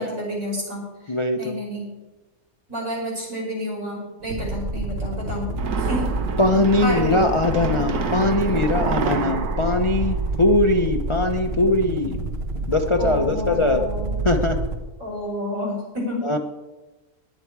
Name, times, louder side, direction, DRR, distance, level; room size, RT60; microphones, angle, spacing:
voice 1, 0.0-1.9 2.7-5.5 5.8-6.1 6.8-7.2 13.0-14.2 15.0-16.3, equal, 65° right, -3 dB, 6.4 m, -30 dB
voice 2, 1.1-1.5 6.4-12.3 12.7-13.8 14.2-14.6 16.2-16.4, left 2 dB, 30° left, 5 dB, 0.6 m, -21 dB
sound 1, 4.2-14.8, right 2 dB, 45° right, 1.3 m, -28 dB
sound 2, 5.5-10.9, right 6 dB, 85° right, 1.6 m, -29 dB
18.5 x 11.0 x 4.7 m, 1.2 s
omnidirectional pair, 1.5 m